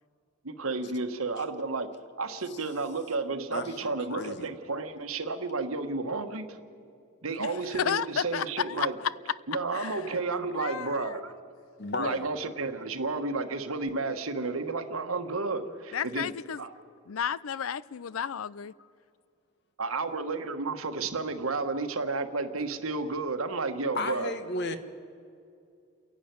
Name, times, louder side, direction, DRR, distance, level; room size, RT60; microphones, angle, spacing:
voice 1, 0.4-1.9 2.2-6.6 7.2-8.9 9.5-11.3 12.0-16.3 16.6-16.7 19.8-24.3, right 3 dB, 85° right, 1.4 m, -32 dB
voice 2, 3.5-4.5 11.8-12.3 23.9-24.8, left 2 dB, 55° left, 1.3 m, -34 dB
voice 3, 7.4-9.1 9.7-10.1 10.5-11.2 15.9-16.6 17.1-18.7, left 8 dB, 80° left, 0.5 m, -32 dB
29.5 x 11.5 x 9.4 m
head